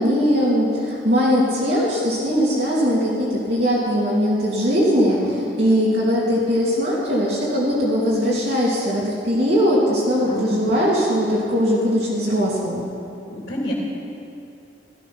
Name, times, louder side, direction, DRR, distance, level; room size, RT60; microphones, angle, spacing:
voice 1, 0.0-12.9, equal, 60° right, -6 dB, 2.9 m, -20 dB
voice 2, 5.1-5.6 10.2-10.8 13.3-13.7, equal, 60° left, -5 dB, 3.2 m, -30 dB
15.5 x 14.0 x 5.9 m, 2.7 s
head